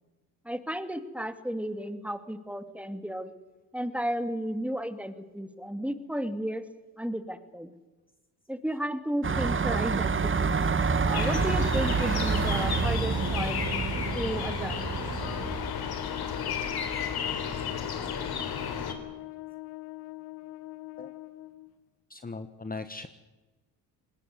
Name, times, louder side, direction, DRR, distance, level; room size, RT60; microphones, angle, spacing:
voice 1, 0.4-3.3 3.7-6.6 7.0-7.7 8.5-10.7 11.0-13.6 14.1-15.2, equal, 5° right, 10 dB, 2.3 m, -33 dB
sound 1, 9.2-15.7, right 5 dB, 30° right, 1.5 m, -28 dB
sound 2, 11.1-18.9, left 6 dB, 60° left, 3.7 m, -33 dB
Trumpet, 15.2-21.7, left 17 dB, 85° left, 1.4 m, -42 dB
voice 2, 22.1-23.1, left 3 dB, 20° left, 10 dB, 1.3 m, -38 dB
20.0 x 18.5 x 9.6 m, 1.2 s
supercardioid pair, 70°, 43 cm